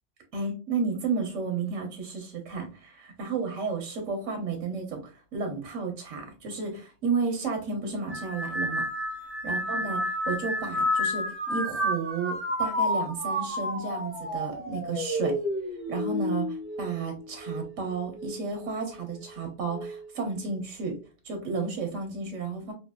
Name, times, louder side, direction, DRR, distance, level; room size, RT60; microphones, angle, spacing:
voice 1, 0.3-8.8 9.4-15.4 15.9-21.0 21.2-22.7, right 4 dB, 85° right, 3 dB, 1.3 m, -32 dB
sound 1, 8.1-17.7 18.1-18.7 19.7-20.1, left 1 dB, 10° right, 1.2 m, -30 dB
3.3 x 2.8 x 2.2 m, 0.33 s
omnidirectional pair, 1.3 m